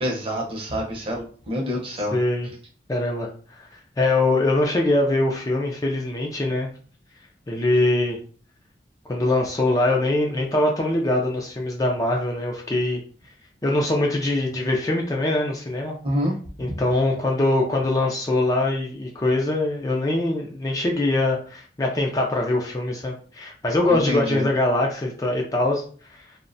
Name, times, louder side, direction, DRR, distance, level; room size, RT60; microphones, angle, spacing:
voice 1, 0.0-2.2 16.0-16.3 23.9-24.5, equal, 30° right, -1 dB, 0.7 m, -27 dB
voice 2, 2.1-2.5 2.9-3.7 4.0-6.7 7.5-8.2 9.1-13.0 13.6-15.9 16.6-25.8 26.1-26.2, left 2 dB, 20° left, 0 dB, 0.3 m, -23 dB
2.6 x 2.1 x 2.6 m, 0.42 s
head